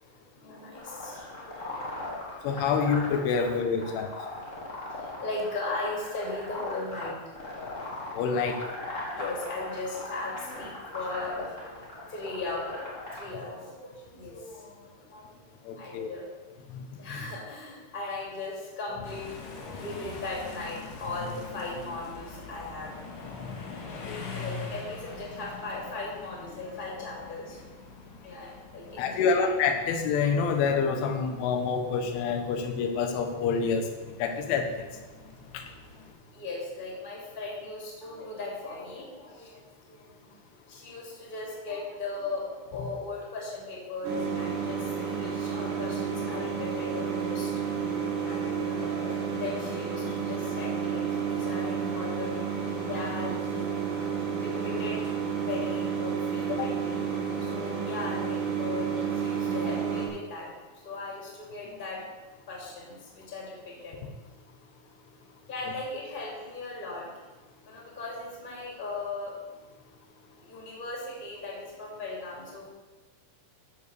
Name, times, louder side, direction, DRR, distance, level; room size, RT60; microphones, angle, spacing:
voice 1, 0.3-2.2 3.3-3.5 3.8-3.9 4.3-7.2 8.6-8.7 9.1-12.8 13.1-15.2 15.5-16.4 17.0-19.3 19.7-23.0 24.3-29.6 36.3-40.3 40.7-47.5 48.1-55.1 55.4-57.0 57.4-62.1 62.5-64.1 65.5-67.1 67.7-69.4 70.4-72.7, left 3 dB, 15° left, -3 dB, 2.4 m, -38 dB
sound 1, 0.7-13.2, left 2 dB, 30° left, 1.3 m, -39 dB
voice 2, 2.4-4.1 8.2-8.6 15.7-16.1 16.7-16.8 24.1-24.2 29.0-33.9 34.2-34.7 35.5-35.6 56.6-56.7, left 5 dB, 85° left, 5 dB, 3.7 m, -27 dB
sound 2, 19.0-36.1, left 4 dB, 60° left, 2.9 m, -44 dB
sound 3, 44.0-60.1, right 6 dB, 55° right, 3.9 m, -31 dB
14.5 x 5.4 x 6.8 m, 1.3 s
omnidirectional pair, 5.4 m